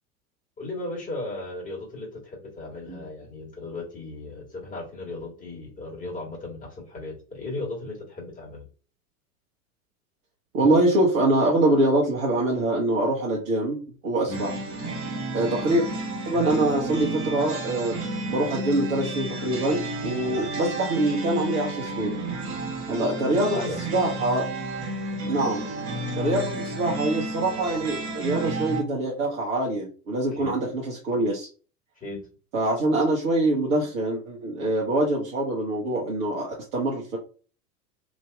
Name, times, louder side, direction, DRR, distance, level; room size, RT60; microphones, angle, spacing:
voice 1, 0.6-8.6 14.3-14.4 20.3-20.5 23.2-23.8 30.3-30.5 32.0-32.2, left 2 dB, 15° left, -2 dB, 1.4 m, -36 dB
voice 2, 10.5-13.8 14.0-14.5 15.3-15.8 16.2-18.0 18.3-22.1 22.9-23.6 23.9-24.5 25.3-25.6 26.2-31.5 32.5-37.2, right 1 dB, 60° right, -4 dB, 1.1 m, -24 dB
sound 1, 14.3-28.8, right 2 dB, 30° right, 1.2 m, -32 dB
3.0 x 2.7 x 2.2 m, 0.37 s
figure-of-eight pair, 80°, 46 cm